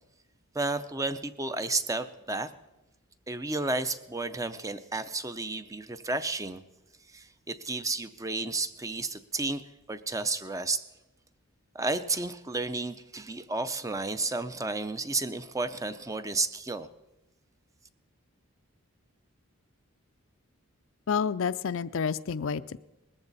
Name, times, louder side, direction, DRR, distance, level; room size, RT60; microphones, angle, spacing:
voice 1, 0.5-2.5 3.3-6.6 7.1-9.6 9.9-10.8 11.7-16.9, right 3 dB, 15° right, 12 dB, 0.5 m, -32 dB
voice 2, 21.1-22.8, left 6 dB, 60° left, 14 dB, 0.4 m, -29 dB
20.0 x 14.5 x 4.0 m, 1.0 s
head